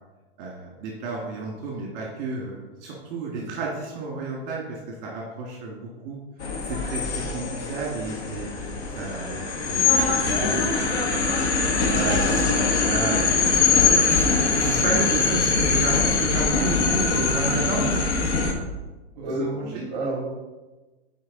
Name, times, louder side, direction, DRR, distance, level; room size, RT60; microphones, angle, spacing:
voice 1, 0.4-6.2 6.6-8.7 8.9-11.5 11.9-13.2 13.7-14.2 14.6-18.0 19.3-19.8, right 3 dB, 40° right, -3 dB, 1.7 m, -32 dB
sound 1, 6.4-18.5, left 4 dB, 75° left, 1.6 m, -22 dB
voice 2, 19.2-20.2, right 2 dB, 20° right, -2 dB, 2.5 m, -30 dB
9.3 x 4.6 x 3.7 m, 1.2 s
supercardioid pair, 155°, 33 cm